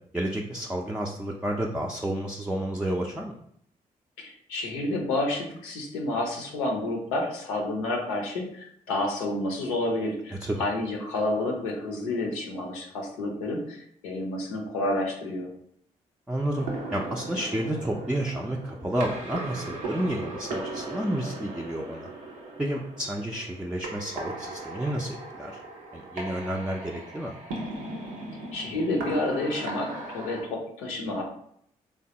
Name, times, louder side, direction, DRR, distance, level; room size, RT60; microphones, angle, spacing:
voice 1, 0.1-3.3 10.4-10.7 16.3-16.7 16.9-22.1 22.6-25.6 25.9-27.4, right 1 dB, 5° right, -1 dB, 0.4 m, -30 dB
voice 2, 4.2-15.5 28.5-31.2, left 2 dB, 90° left, 0 dB, 0.6 m, -30 dB
sound 1, 16.5-30.4, right 2 dB, 85° right, 0.6 m, -38 dB
3.2 x 2.2 x 2.8 m, 0.68 s
hypercardioid pair, 40°, 17 cm